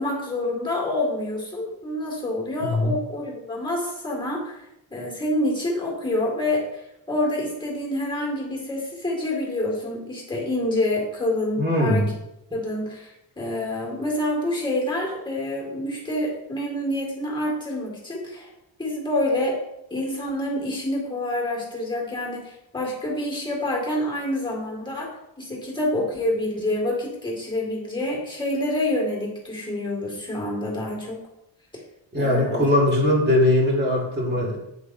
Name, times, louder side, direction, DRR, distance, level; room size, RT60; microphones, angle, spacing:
voice 1, 0.0-6.8 7.1-12.1 12.5-18.5 18.8-19.6 19.9-31.2 32.2-32.7, left 1 dB, 10° left, -2 dB, 2.0 m, -27 dB
voice 2, 2.6-2.9 11.6-12.1 32.1-34.6, left 1 dB, 20° right, -4 dB, 2.0 m, -20 dB
8.1 x 8.0 x 2.7 m, 0.85 s
wide cardioid pair, 175°, 48 cm